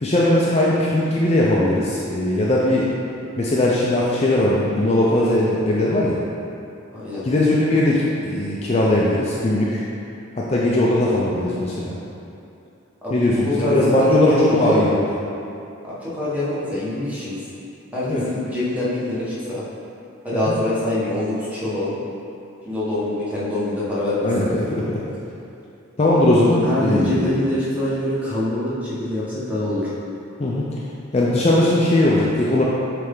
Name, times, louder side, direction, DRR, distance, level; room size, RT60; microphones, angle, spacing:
voice 1, 0.0-2.9 3.4-6.2 7.2-9.8 10.4-12.0 13.1-15.1 18.1-18.2 20.3-20.6 24.2-25.0 26.0-27.4 30.4-30.7 31.1-32.7, left 1 dB, 30° left, -5 dB, 0.5 m, -19 dB
voice 2, 6.9-7.2 13.0-14.1 14.3-14.9 15.8-17.3 17.9-19.7 20.2-22.0 22.6-24.3 26.6-29.9, left 1 dB, 5° right, -10 dB, 1.3 m, -24 dB
7.6 x 3.3 x 3.7 m, 2.7 s
head